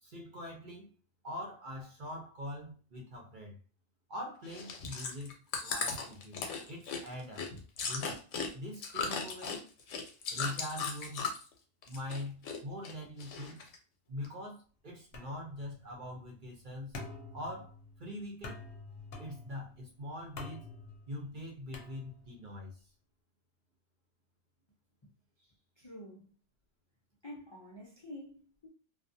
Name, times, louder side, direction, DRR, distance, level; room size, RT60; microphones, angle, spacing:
voice 1, 0.0-0.9 1.2-3.6 4.1-7.5 7.9-8.3 8.5-9.7 10.3-11.3 11.9-13.6 14.1-17.0 17.3-18.6 19.2-20.6 21.1-22.9, left 1 dB, 50° right, 0.8 m, -43 dB
Chewing mastication, 4.5-11.5 11.8-12.6 12.8-13.8 14.2-14.3, left 5 dB, 85° left, 1.0 m, -37 dB
sound 1, 15.1-22.5, left 3 dB, 60° left, 0.8 m, -49 dB
voice 2, 25.4-26.3 27.2-28.7, left 1 dB, 40° left, 0.4 m, -49 dB
2.4 x 2.3 x 2.6 m
omnidirectional pair, 1.2 m